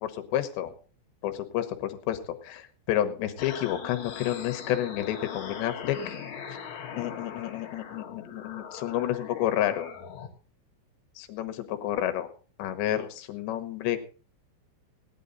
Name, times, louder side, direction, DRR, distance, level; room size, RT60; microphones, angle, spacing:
voice 1, 0.0-0.7 1.2-6.2 7.0-9.9 11.2-12.3 12.6-14.0, left 12 dB, 70° left, 9 dB, 3.2 m, -30 dB
sound 1, 3.4-10.3, left 7 dB, 55° left, 2.1 m, -40 dB
17.5 x 10.0 x 3.9 m, 0.37 s
omnidirectional pair, 5.6 m